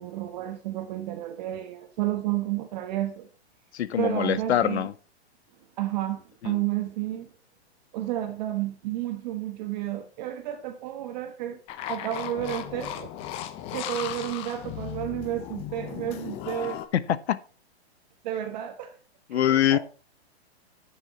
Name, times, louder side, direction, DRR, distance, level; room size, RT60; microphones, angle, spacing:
voice 1, 0.0-3.3 4.0-4.9 5.8-7.3 7.9-11.6 11.9-13.1 13.7-16.8 18.2-19.0 19.3-19.8, right 13 dB, 40° right, 1.2 m, -31 dB
voice 2, 3.7-4.9 6.4-6.6 16.9-17.4 19.3-19.8, left 11 dB, 75° left, 1.0 m, -24 dB
sound 1, 11.7-16.9, left 11 dB, 20° left, 0.5 m, -36 dB
10.0 x 6.2 x 4.8 m
hypercardioid pair, 155°, 33 cm